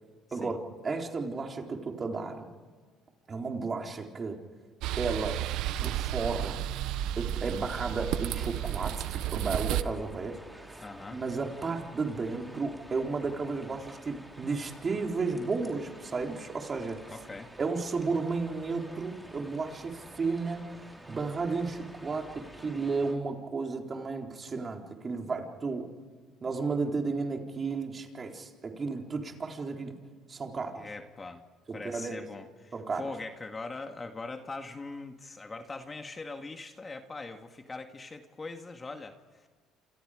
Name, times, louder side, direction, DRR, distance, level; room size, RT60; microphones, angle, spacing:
voice 1, 0.3-2.5 3.3-4.4 5.0-5.4 5.8-6.6 7.2-10.8 11.1-17.1 17.6-25.9 26.4-29.9 30.3-30.8 31.7-32.2 32.7-33.0, right 4 dB, 30° right, 2 dB, 4.0 m, -33 dB
sound 1, 4.8-9.8, right 13 dB, 75° right, 1.1 m, -32 dB
sound 2, 8.0-23.1, right 1 dB, 5° right, 5.0 m, -50 dB
voice 2, 10.8-11.2 17.1-17.5 30.8-31.4 31.7-39.5, left 3 dB, 25° left, 5 dB, 2.1 m, -42 dB
28.0 x 27.5 x 5.2 m, 1.5 s
supercardioid pair, 90°, 0 cm